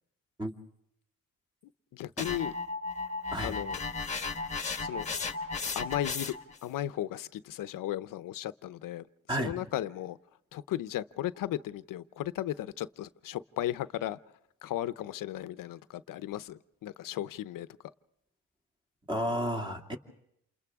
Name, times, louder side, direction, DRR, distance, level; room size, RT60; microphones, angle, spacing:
voice 1, 1.9-2.5 3.4-3.8 4.8-5.1 5.7-6.3 6.6-10.2 10.5-14.2 14.6-17.7, left 13 dB, 75° left, 0.8 m, -35 dB
sound 1, 2.2-6.6, left 4 dB, 20° left, 1.3 m, -35 dB
voice 2, 19.1-20.0, equal, 15° right, 2.4 m, -31 dB
28.5 x 28.5 x 3.6 m
cardioid pair, 120°, 33 cm